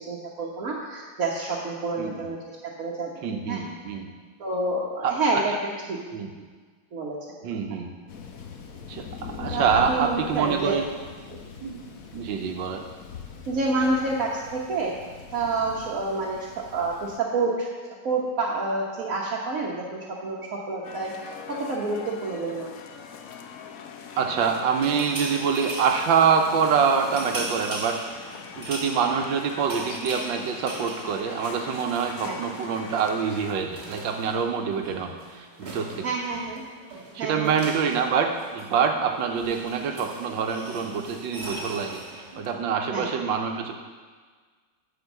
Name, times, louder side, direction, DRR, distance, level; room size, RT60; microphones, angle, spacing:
voice 1, 0.1-2.4 2.8-3.6 4.4-5.5 5.9-6.0 6.9-7.2 9.4-10.8 13.5-14.9 15.3-16.4 16.7-17.7 18.0-21.1 21.5-22.7 32.2-32.4 36.0-36.6 37.2-37.5 42.9-43.1, right 3 dB, 50° right, -5 dB, 1.2 m, -28 dB
voice 2, 3.2-4.1 5.0-5.1 6.1-6.5 7.4-7.9 8.9-9.0 9.4-10.8 11.6-11.8 12.1-12.8 24.2-28.0 28.5-36.1 37.1-42.0 42.4-43.8, right 6 dB, 70° right, 3 dB, 1.5 m, -25 dB
Thunder, 8.1-17.2, left 6 dB, 60° left, 1.0 m, -41 dB
sound 1, 20.8-33.5, left 6 dB, 85° left, 0.7 m, -42 dB
sound 2, 24.8-32.7 33.0-33.2 33.4-42.5, right 1 dB, 25° right, 1.1 m, -39 dB
10.0 x 4.6 x 7.2 m, 1.5 s
omnidirectional pair, 2.3 m